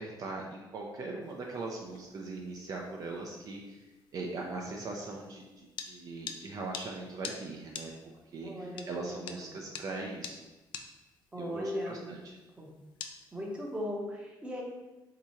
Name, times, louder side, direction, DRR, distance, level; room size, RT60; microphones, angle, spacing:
voice 1, 0.0-3.9 4.1-7.9 8.3-10.4 11.4-12.3, right 3 dB, 45° right, 0 dB, 0.5 m, -40 dB
sound 1, 1.2-13.8, left 7 dB, 75° left, 0.4 m, -49 dB
voice 2, 8.4-9.6 11.3-12.2 12.6-12.7 13.3-14.6, equal, 10° right, -1 dB, 0.7 m, -38 dB
3.6 x 2.8 x 4.4 m, 1.1 s
cardioid pair, 160°, 8 cm